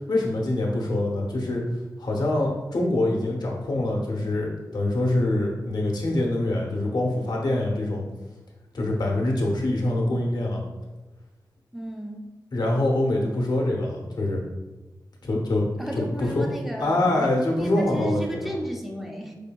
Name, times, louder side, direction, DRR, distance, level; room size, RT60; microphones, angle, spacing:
voice 1, 0.1-1.6 2.0-8.0 8.7-10.6 12.5-14.4 15.2-15.7 15.9-16.4 16.8-18.5, left 1 dB, 65° left, -1 dB, 0.8 m, -25 dB
voice 2, 11.7-12.2 15.8-19.3, right 1 dB, ahead, 1 dB, 0.5 m, -33 dB
5.0 x 2.7 x 2.2 m, 1.1 s
wide cardioid pair, 90°, 8 cm